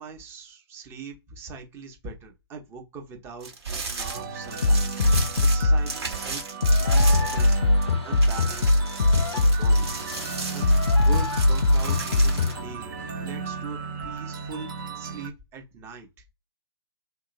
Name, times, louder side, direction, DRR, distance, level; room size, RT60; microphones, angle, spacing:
voice 1, 0.0-4.9 5.2-7.6 8.0-8.8 9.3-9.9 10.5-10.7 11.0-14.7 14.9-16.1, right 5 dB, 15° right, 0.8 m, -41 dB
sound 1, 3.4-7.9 8.1-12.5, right 4 dB, 70° right, 1.4 m, -35 dB
sound 2, 4.0-15.3, right 6 dB, 50° right, 0.8 m, -36 dB
sound 3, 4.6-5.9 6.6-12.6, left 2 dB, 75° left, 0.4 m, -21 dB
2.9 x 2.8 x 2.5 m
figure-of-eight pair, 125°, 14 cm